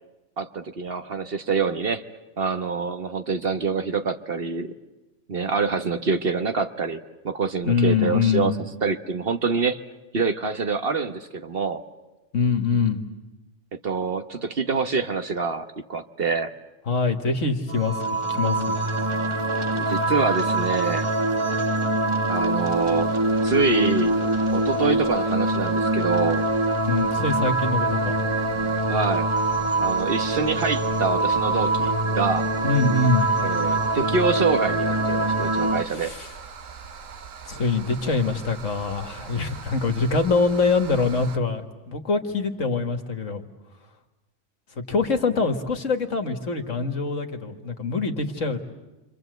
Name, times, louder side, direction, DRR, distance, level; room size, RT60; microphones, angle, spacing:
voice 1, 0.4-2.0 2.4-4.7 5.3-8.5 8.8-9.8 10.1-11.8 13.8-16.5 19.7-21.1 22.3-23.1 23.4-24.1 24.5-26.5 28.9-29.3 29.8-32.5 33.4-36.1, right 4 dB, 45° right, 8 dB, 1.3 m, -26 dB
voice 2, 7.6-8.6 12.3-13.0 16.9-18.0 18.3-18.8 26.9-28.5 32.6-33.4 35.8-36.3 37.5-43.4 44.7-48.6, left 4 dB, 65° left, 6 dB, 2.2 m, -24 dB
sound 1, 17.7-35.8, right 2 dB, 25° right, 1.0 m, -24 dB
sound 2, 22.3-41.4, right 5 dB, 70° right, 1.6 m, -43 dB
29.5 x 25.0 x 8.0 m, 1.1 s
omnidirectional pair, 1.4 m